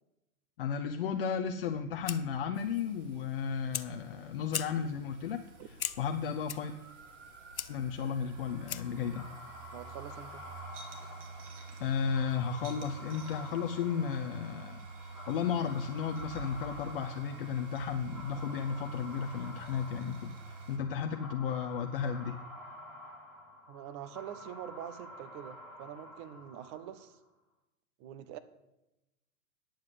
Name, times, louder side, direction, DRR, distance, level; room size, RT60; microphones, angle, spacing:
voice 1, 0.6-5.4 6.0-6.8 7.7-9.3 11.8-22.4, left 7 dB, 40° left, 0.7 m, -34 dB
Fire, 1.6-9.1, left 9 dB, 75° left, 0.8 m, -43 dB
sound 1, 2.5-20.8, right 4 dB, 55° right, 2.7 m, -49 dB
sound 2, 8.3-27.2, left 1 dB, 5° right, 1.8 m, -50 dB
voice 2, 9.7-10.5 23.7-27.2 28.0-28.4, right 10 dB, 20° right, 0.5 m, -45 dB
10.0 x 7.3 x 7.7 m
figure-of-eight pair, 110°, 42 cm